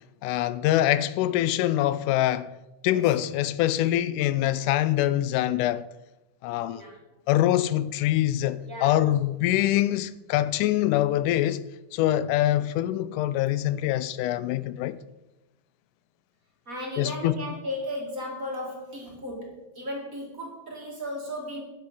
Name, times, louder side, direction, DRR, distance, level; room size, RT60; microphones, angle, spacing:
voice 1, 0.2-2.5 2.8-5.8 6.4-6.8 7.3-11.6 11.9-15.0 17.0-17.4, left 13 dB, 90° left, 2.1 m, -24 dB
voice 2, 8.7-9.2 16.7-21.6, equal, 30° right, 2.3 m, -35 dB
9.4 x 7.9 x 5.5 m
omnidirectional pair, 3.5 m